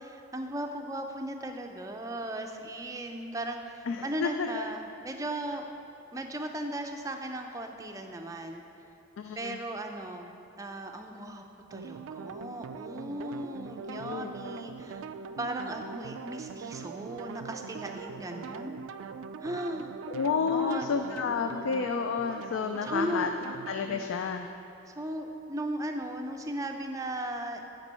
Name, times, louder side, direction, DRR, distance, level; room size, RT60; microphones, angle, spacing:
voice 1, 0.1-5.7 6.1-8.6 9.4-10.3 10.6-11.4 11.7-15.0 15.4-18.8 19.4-19.9 20.5-20.9 21.5-21.7 22.8-23.3 24.9-27.6, right 1 dB, 15° right, 4 dB, 0.4 m, -37 dB
voice 2, 3.9-4.6 9.2-9.6 13.9-14.3 20.1-23.3 23.7-24.5, left 5 dB, 80° left, 6 dB, 0.4 m, -30 dB
sound 1, 11.7-24.1, right 5 dB, 80° right, 0.3 m, -42 dB
8.9 x 5.3 x 5.6 m, 2.9 s
head